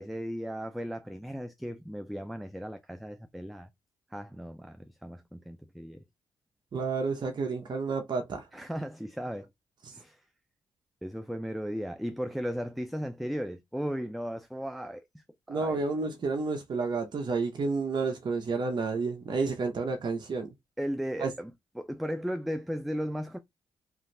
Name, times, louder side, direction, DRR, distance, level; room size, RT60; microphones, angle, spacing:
voice 1, 0.0-3.7 4.1-6.0 8.5-9.5 9.9-10.2 11.0-15.8 20.8-21.5 21.8-23.4, equal, ahead, 0.3 m, -36 dB
voice 2, 6.7-8.5 9.8-10.0 15.5-20.5 21.2-21.3, right 4 dB, 50° right, 0.8 m, -30 dB
2.6 x 2.3 x 3.1 m
cardioid pair, 60°, 10 cm